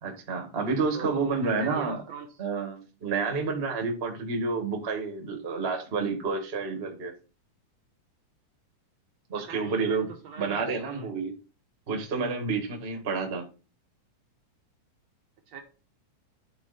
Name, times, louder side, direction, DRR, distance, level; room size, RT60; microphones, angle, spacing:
voice 1, 0.0-2.0 2.4-7.1 9.3-10.1 10.4-11.3 11.9-13.5, right 4 dB, 30° right, 3 dB, 1.2 m, -29 dB
voice 2, 0.9-2.4 9.4-11.1 15.5-15.6, right 7 dB, 65° right, 3 dB, 1.9 m, -41 dB
10.0 x 4.3 x 4.1 m, 0.33 s
omnidirectional pair, 3.7 m